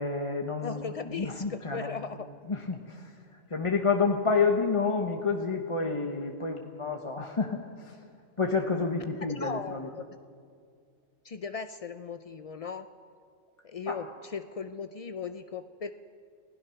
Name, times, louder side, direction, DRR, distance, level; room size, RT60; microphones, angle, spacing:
voice 1, 0.0-2.0 2.5-3.1 3.5-8.0 8.4-9.9 13.9-14.0, left 4 dB, 25° left, 3 dB, 1.0 m, -29 dB
voice 2, 0.6-2.3 9.2-10.1 11.2-12.9 13.6-15.9, left 5 dB, 60° left, 9 dB, 0.3 m, -37 dB
30.0 x 16.5 x 5.8 m, 2.2 s
omnidirectional pair, 1.4 m